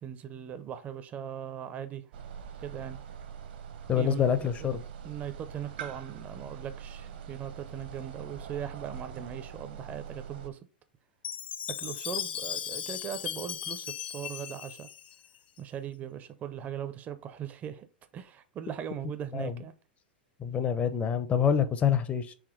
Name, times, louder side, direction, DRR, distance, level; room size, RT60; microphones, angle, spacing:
voice 1, 0.0-2.1 2.6-3.0 3.9-4.8 5.0-10.6 11.8-14.9 15.6-17.9 18.1-19.7, right 9 dB, 30° right, 0.5 m, -39 dB
sound 1, 2.1-10.5, right 7 dB, 65° right, 0.8 m, -43 dB
voice 2, 3.9-4.8 19.3-19.6 20.4-22.3, left 8 dB, 25° left, 0.6 m, -26 dB
Chime, 11.2-15.6, left 9 dB, 70° left, 0.4 m, -37 dB
4.9 x 3.4 x 3.1 m
hypercardioid pair, 100°, 6 cm